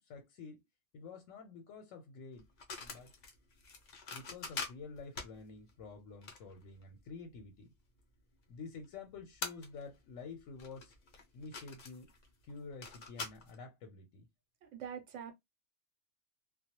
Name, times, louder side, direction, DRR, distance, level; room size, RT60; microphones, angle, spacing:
voice 1, 0.1-0.6 0.9-2.4 2.8-3.1 4.1-7.7 8.5-10.9 11.3-12.1 12.5-14.3, left 4 dB, 90° left, 1.0 m, -49 dB
sound 1, 2.4-7.5 8.0-8.1 8.9-9.0 9.4-10.1 10.4-13.6, left 4 dB, 60° left, 0.4 m, -45 dB
voice 2, 14.6-15.3, right 8 dB, 75° right, 0.9 m, -44 dB
2.3 x 2.0 x 2.8 m
omnidirectional pair, 1.3 m